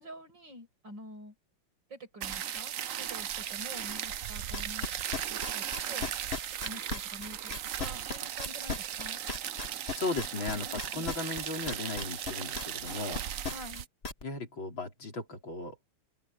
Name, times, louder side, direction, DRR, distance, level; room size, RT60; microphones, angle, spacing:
voice 1, 0.0-1.3 1.9-4.9 5.3-6.1 6.6-9.2 10.6-11.1 13.4-13.9, equal, 55° right, 7.5 m, -47 dB
sound 1, 2.2-13.9, right 10 dB, 80° right, 0.7 m, -37 dB
sound 2, 4.5-14.2, left 4 dB, 30° left, 2.0 m, -36 dB
voice 2, 10.0-13.2 14.2-15.7, left 3 dB, 60° left, 5.2 m, -36 dB
omnidirectional pair, 2.4 m